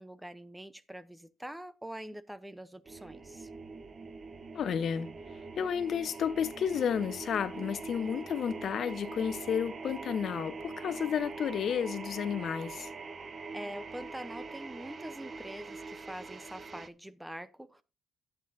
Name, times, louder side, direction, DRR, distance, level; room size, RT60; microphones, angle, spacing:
voice 1, 0.0-3.5 13.5-17.8, right 1 dB, 5° right, 0.7 m, -44 dB
sound 1, 2.8-16.9, right 4 dB, 40° right, 0.8 m, -43 dB
voice 2, 4.5-5.1 5.6-12.9, left 8 dB, 60° left, 0.8 m, -32 dB
12.0 x 8.9 x 2.6 m
cardioid pair, 90°, 0 cm